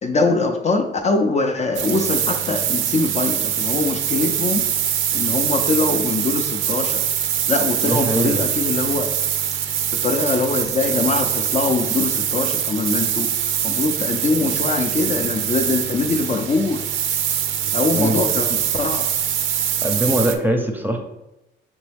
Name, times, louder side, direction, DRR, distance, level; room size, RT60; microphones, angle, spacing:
voice 1, 0.0-4.6 5.1-7.0 7.5-9.1 10.0-13.3 13.6-16.8 17.7-19.0, left 3 dB, 35° left, 2 dB, 0.5 m, -22 dB
sound 1, 1.8-20.4, right 9 dB, 75° right, 0.5 m, -23 dB
voice 2, 7.8-8.4 18.0-18.2 19.8-21.0, right 1 dB, 10° right, 3 dB, 0.7 m, -21 dB
5.2 x 3.0 x 3.4 m, 0.91 s
cardioid pair, 90°, 20 cm